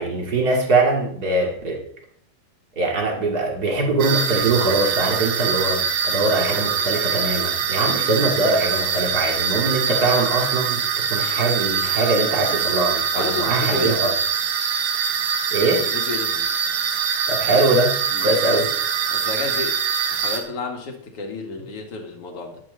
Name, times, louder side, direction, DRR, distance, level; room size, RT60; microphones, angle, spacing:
voice 1, 0.0-1.8 2.8-14.1 15.5-15.8 17.3-18.7, right 2 dB, 30° right, 0 dB, 2.1 m, -22 dB
sound 1, 4.0-20.4, right 7 dB, 75° right, 3.1 m, -23 dB
voice 2, 13.2-14.1 15.7-16.5 18.1-18.6 19.1-19.8 20.2-22.6, left 3 dB, 45° left, 2 dB, 2.3 m, -31 dB
14.5 x 11.0 x 4.0 m, 0.64 s
omnidirectional pair, 4.4 m